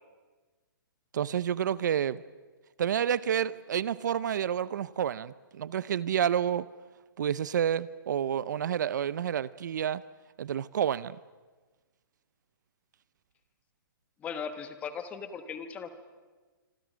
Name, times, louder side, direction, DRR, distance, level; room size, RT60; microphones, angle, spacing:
voice 1, 1.1-2.2 2.8-6.7 7.2-10.0 10.4-11.2, right 9 dB, 55° right, 19 dB, 0.6 m, -29 dB
voice 2, 14.2-15.9, left 6 dB, 10° left, 10 dB, 1.2 m, -38 dB
26.0 x 25.0 x 6.2 m, 1.3 s
hypercardioid pair, 165°, 12 cm